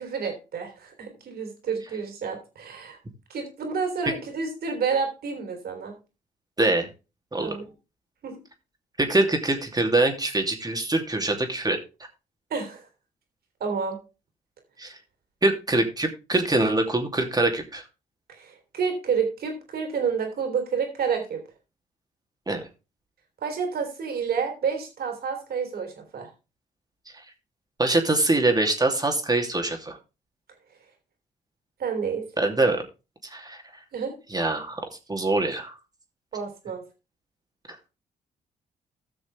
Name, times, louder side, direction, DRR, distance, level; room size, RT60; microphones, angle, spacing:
voice 1, 0.0-3.0 3.3-5.9 7.4-7.7 8.2-8.4 12.5-12.9 13.6-14.0 18.3-21.4 23.4-26.3 31.8-32.2 33.9-34.1 36.3-36.8, right 6 dB, 65° right, 4 dB, 3.5 m, -29 dB
voice 2, 6.6-6.9 7.3-7.6 9.0-11.8 14.8-14.9 15.4-17.8 22.5-22.6 27.8-30.0 32.4-32.8 33.3-33.6 34.3-35.7, right 2 dB, 25° right, 3 dB, 2.8 m, -24 dB
15.5 x 6.3 x 3.4 m, 0.30 s
supercardioid pair, 55°, 17 cm